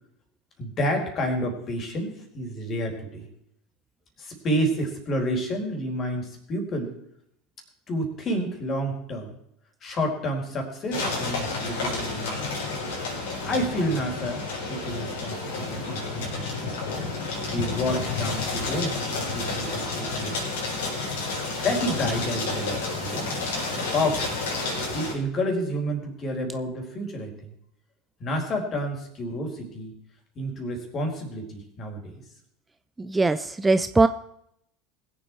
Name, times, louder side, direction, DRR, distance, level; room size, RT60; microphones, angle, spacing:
voice 1, 0.6-3.3 4.2-6.9 7.9-9.4 9.8-12.6 13.4-14.4 14.7-16.7 17.4-19.1 19.3-20.5 21.6-23.3 23.7-24.3 24.9-27.5 28.2-29.9 30.4-32.2, equal, 40° left, 3 dB, 4.2 m, -29 dB
sound 1, 10.9-25.1, left 3 dB, 70° left, 4.1 m, -30 dB
voice 2, 33.0-34.1, right 3 dB, 15° right, 12 dB, 0.5 m, -21 dB
21.0 x 7.7 x 4.6 m, 0.74 s
hypercardioid pair, 80°, 0 cm